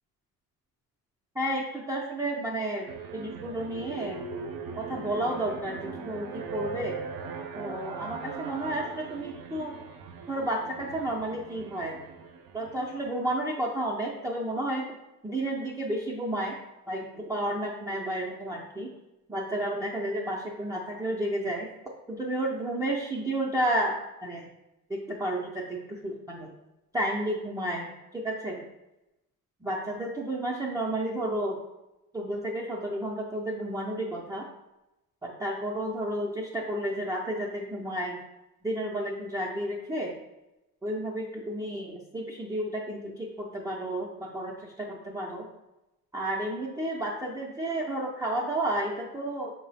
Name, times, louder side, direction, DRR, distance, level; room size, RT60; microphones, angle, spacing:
voice 1, 1.3-4.2 4.8-7.1 7.6-9.7 10.3-12.0 12.5-14.9 15.2-16.6 16.9-18.9 19.3-21.7 22.1-24.5 24.9-26.5 26.9-28.7 29.6-31.6 32.1-34.5 35.2-38.2 38.6-40.2 40.8-45.5 46.1-49.5, right 1 dB, 10° right, -4 dB, 0.4 m, -31 dB
sound 1, 2.9-13.3, right 5 dB, 70° right, 0.5 m, -40 dB
4.7 x 2.0 x 4.0 m, 0.95 s
cardioid pair, 100°, 37 cm